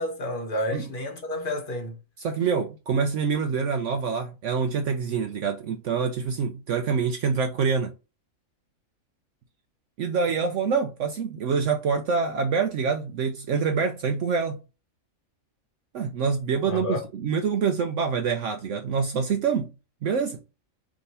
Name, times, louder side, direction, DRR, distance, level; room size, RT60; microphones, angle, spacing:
voice 1, 0.0-2.0 16.7-17.0, left 1 dB, 40° left, 1.1 m, -30 dB
voice 2, 2.2-7.9 10.0-14.6 15.9-19.7 20.0-20.4, right 5 dB, 70° right, 0.9 m, -26 dB
3.7 x 2.9 x 4.0 m
omnidirectional pair, 1.4 m